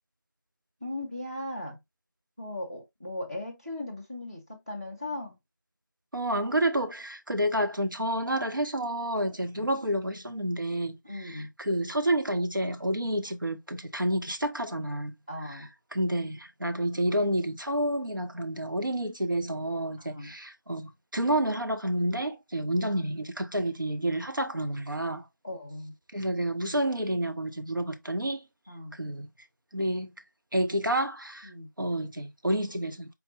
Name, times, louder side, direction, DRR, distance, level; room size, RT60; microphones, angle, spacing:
voice 1, 0.8-1.8 2.4-5.4 9.5-9.7 11.0-11.5 15.3-15.7 20.0-20.3 22.7-23.0 25.4-25.9 28.7-29.0 31.4-31.7, left 1 dB, 20° right, 0.8 m, -38 dB
voice 2, 6.1-15.1 15.5-15.6 15.9-25.3 26.1-28.4 28.9-29.3 29.7-30.1 30.5-31.5 31.8-33.1, right 1 dB, 75° right, 1.1 m, -29 dB
4.4 x 2.1 x 4.1 m
figure-of-eight pair, 175°, 11 cm